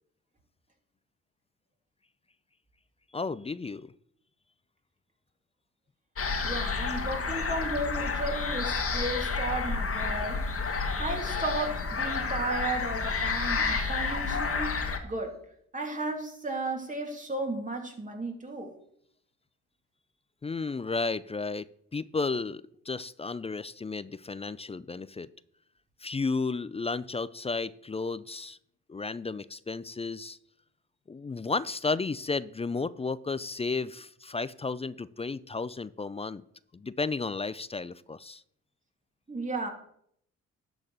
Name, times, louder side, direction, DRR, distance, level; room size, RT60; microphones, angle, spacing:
voice 1, 3.1-3.9 20.4-21.7 21.9-25.3 26.0-28.6 28.9-30.4 31.1-36.4 36.7-38.4, left 4 dB, 20° left, 17 dB, 0.4 m, -33 dB
sound 1, 6.2-15.0, left 4 dB, 40° left, 1.8 m, -30 dB
voice 2, 6.4-10.4 11.0-14.7 15.0-15.3 15.7-18.7 39.3-39.7, right 2 dB, 25° right, 2 dB, 2.9 m, -34 dB
12.0 x 4.1 x 7.4 m, 0.69 s
supercardioid pair, 60°, 33 cm